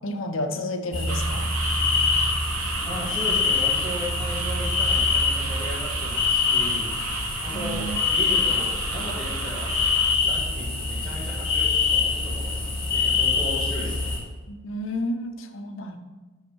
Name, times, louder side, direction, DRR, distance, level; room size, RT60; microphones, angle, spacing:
voice 1, 0.0-1.5 7.5-8.0 14.5-16.0, left 1 dB, 65° left, 7 dB, 0.8 m, -31 dB
sound 1, 0.9-14.2, left 4 dB, 25° left, 2.6 m, -25 dB
sound 2, 1.1-10.2, right 5 dB, 85° right, 0.8 m, -33 dB
voice 2, 2.8-6.9 7.4-9.8 10.2-12.6 12.9-14.1, equal, 5° left, -11 dB, 2.2 m, -36 dB
6.5 x 5.8 x 6.2 m, 1.3 s
head